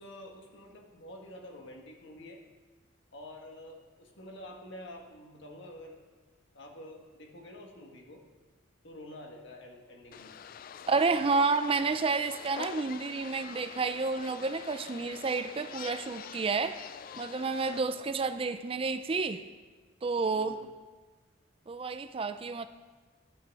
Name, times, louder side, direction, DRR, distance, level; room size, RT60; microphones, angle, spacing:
voice 1, 0.0-2.4 3.1-6.0 6.5-8.2 8.8-10.4 17.7-18.0 20.3-20.7, left 1 dB, 60° left, 1 dB, 1.7 m, -48 dB
sound 1, 10.1-17.8, left 7 dB, 45° left, 0.3 m, -45 dB
voice 2, 10.9-16.8 17.2-19.4 20.0-20.6 21.7-22.7, right 4 dB, 30° right, 10 dB, 0.4 m, -30 dB
12.5 x 8.9 x 4.7 m, 1.4 s
head